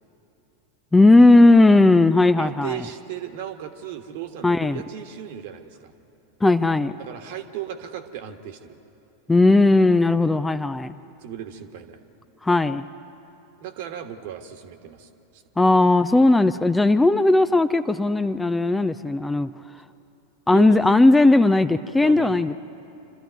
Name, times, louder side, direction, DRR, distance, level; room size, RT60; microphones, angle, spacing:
voice 1, 0.9-2.8 4.4-4.8 6.4-6.9 9.3-11.0 12.4-12.9 15.6-19.5 20.5-22.5, left 2 dB, 10° left, 12 dB, 0.5 m, -17 dB
voice 2, 2.4-5.9 7.0-8.8 11.2-12.0 13.6-15.9 20.5-20.9 22.0-22.3, right 10 dB, 55° right, 7 dB, 1.5 m, -36 dB
27.5 x 13.0 x 9.3 m, 2.8 s
figure-of-eight pair, 85°, 0 cm